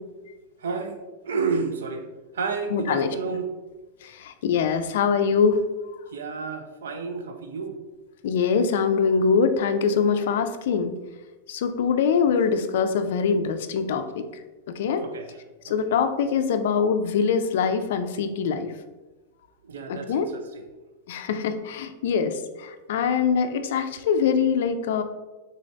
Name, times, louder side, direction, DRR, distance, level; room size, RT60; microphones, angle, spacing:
voice 1, 0.6-2.1 2.3-3.5 6.1-7.8 15.0-15.4 15.7-15.8 19.6-20.7, right 4 dB, 90° right, 6 dB, 0.5 m, -31 dB
voice 2, 2.7-3.4 4.0-5.6 8.2-10.9 11.5-14.3 14.7-15.0 15.6-18.7 19.9-20.3 21.1-25.0, left 6 dB, 70° left, 8 dB, 0.3 m, -23 dB
3.8 x 2.6 x 3.2 m, 1.2 s
hypercardioid pair, 125°, 0 cm